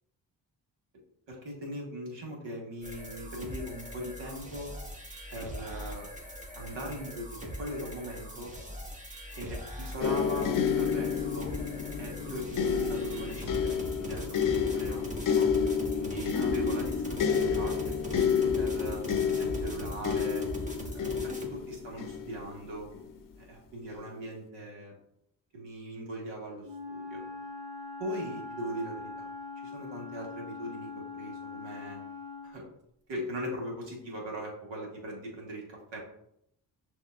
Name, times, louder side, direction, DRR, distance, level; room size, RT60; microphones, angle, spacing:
voice 1, 1.3-4.7 5.3-6.1 6.5-8.5 9.3-10.5 10.8-11.5 12.0-15.5 15.9-19.0 19.4-20.5 20.8-22.9 23.4-24.9 25.5-27.2 28.0-29.0 29.6-32.0 32.4-32.7 33.1-36.0, right 1 dB, 75° right, -1 dB, 1.6 m, -40 dB
sound 1, 2.8-21.5, equal, 15° right, 1.4 m, -41 dB
sound 2, 10.0-23.1 23.9-24.1, left 6 dB, 45° left, 0.6 m, -30 dB
Wind instrument woodwind instrument, 26.6-32.6, left 4 dB, 55° right, 0.9 m, -42 dB
6.4 x 2.9 x 2.4 m, 0.76 s
supercardioid pair, 50°, 44 cm